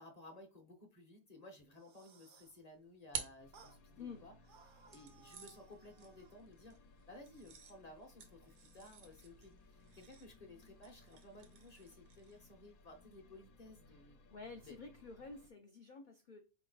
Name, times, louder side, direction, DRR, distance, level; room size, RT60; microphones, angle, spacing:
voice 1, 0.0-4.3 4.7-6.8 7.1-14.2 14.6-14.8, left 2 dB, 35° left, 3 dB, 0.8 m, -57 dB
sound 1, 1.6-2.6 3.5-3.8 4.4-6.4, right 6 dB, 55° right, 0.6 m, -63 dB
sound 2, 2.4-4.2 4.9-12.5, right 7 dB, 90° right, 1.3 m, -52 dB
sound 3, 3.4-15.5, left 2 dB, 80° left, 1.1 m, -64 dB
voice 2, 14.3-16.4, left 4 dB, 60° left, 4 dB, 0.5 m, -50 dB
4.4 x 3.0 x 3.9 m, 0.32 s
omnidirectional pair, 1.5 m